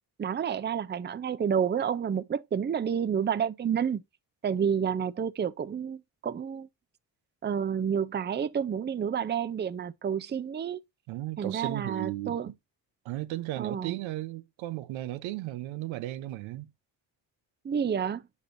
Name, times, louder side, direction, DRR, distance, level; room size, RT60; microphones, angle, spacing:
voice 1, 0.2-4.0 4.4-6.7 7.4-10.8 11.4-12.5 13.6-14.0 17.6-18.2, right 7 dB, 25° right, 0.5 m, -29 dB
voice 2, 11.1-12.5 13.0-16.7, right 16 dB, 85° right, 0.7 m, -35 dB
8.2 x 5.2 x 2.6 m
supercardioid pair, 60°, 46 cm